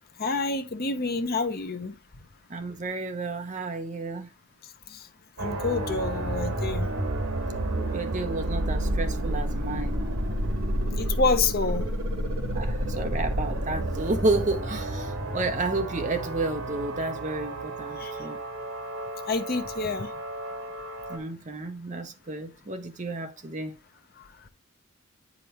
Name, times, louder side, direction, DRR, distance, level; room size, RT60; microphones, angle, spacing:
voice 1, 0.2-1.9 4.9-5.1 5.4-6.9 10.9-11.9 18.0-18.1 19.3-20.1 24.2-24.3, left 3 dB, 45° left, 0.8 m, -28 dB
voice 2, 2.5-4.3 7.8-10.4 12.5-18.4 21.1-23.7, right 2 dB, 35° right, 0.8 m, -31 dB
sound 1, 5.4-21.2, right 1 dB, 85° right, 1.6 m, -30 dB
sound 2, 11.9-19.2, equal, 10° right, 1.4 m, -41 dB
9.0 x 5.1 x 2.9 m
head